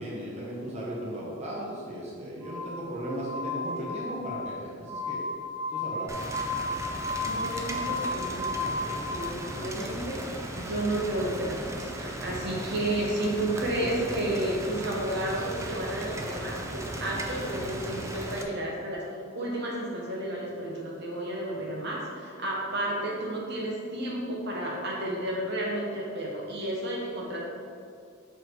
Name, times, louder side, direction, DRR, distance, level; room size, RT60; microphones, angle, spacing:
voice 1, 0.0-5.2 5.7-6.2 13.8-14.1, right 1 dB, 30° right, -5 dB, 1.3 m, -36 dB
Glass, 2.4-9.1, left 2 dB, 80° right, 1.7 m, -33 dB
Rain, 6.1-18.4, right 1 dB, 15° right, 0.5 m, -37 dB
voice 2, 7.2-19.0 19.3-27.4, right 1 dB, 55° right, -3 dB, 1.3 m, -32 dB
7.5 x 4.4 x 4.7 m, 2.3 s
head